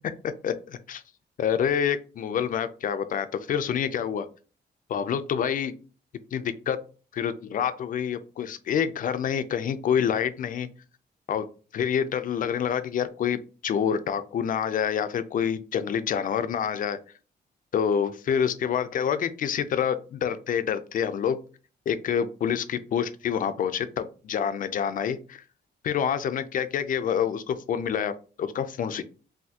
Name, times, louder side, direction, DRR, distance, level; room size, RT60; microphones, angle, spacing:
voice 1, 0.4-1.0 1.4-4.3 4.9-5.7 6.3-6.8 7.1-10.7 11.3-11.5 11.7-13.4 13.6-17.0 17.7-21.4 21.9-25.4 25.8-28.1 28.4-29.0, left 8 dB, 50° left, 12 dB, 0.4 m, -27 dB
5.6 x 2.6 x 2.8 m, 0.36 s
wide cardioid pair, 180°, 18 cm